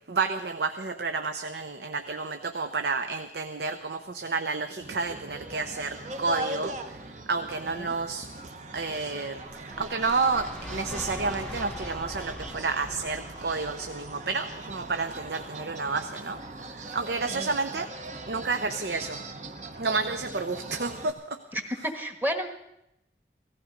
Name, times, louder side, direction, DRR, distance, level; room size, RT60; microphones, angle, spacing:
voice 1, 0.1-7.0 7.3-8.3 8.7-17.9 18.3-19.2 19.8-21.4, right 4 dB, 60° right, 8 dB, 0.7 m, -30 dB
sound 1, 4.8-21.1, right 1 dB, 40° right, 1.0 m, -40 dB
sound 2, 9.4-15.6, left 1 dB, 5° left, 0.4 m, -43 dB
voice 2, 21.5-22.5, equal, 10° right, 6 dB, 1.3 m, -31 dB
17.5 x 15.0 x 5.1 m, 0.85 s
head